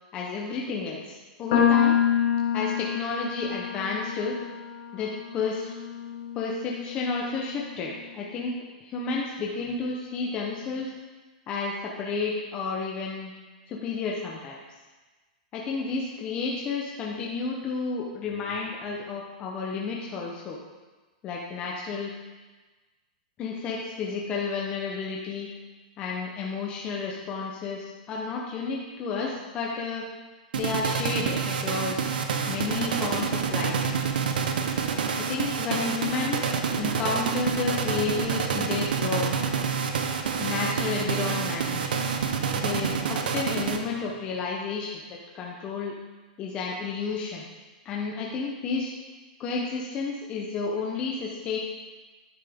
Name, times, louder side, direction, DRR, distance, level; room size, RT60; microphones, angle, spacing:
voice 1, 0.1-2.0 2.5-4.4 4.9-5.7 6.3-10.9 11.5-13.3 13.7-14.6 15.5-20.6 21.2-22.1 23.4-25.5 26.0-30.0 30.5-32.2 32.5-33.8 35.1-39.3 40.4-41.8 42.5-45.0 45.3-45.9 46.4-47.4 47.8-48.9 49.4-51.6, left 4 dB, 20° left, -2 dB, 0.8 m, -31 dB
sound 1, 1.5-7.8, left 8 dB, 55° left, 1.4 m, -27 dB
sound 2, 30.5-44.2, right 6 dB, 85° right, 0.8 m, -28 dB
9.8 x 5.8 x 3.5 m, 1.3 s
supercardioid pair, 165°, 5 cm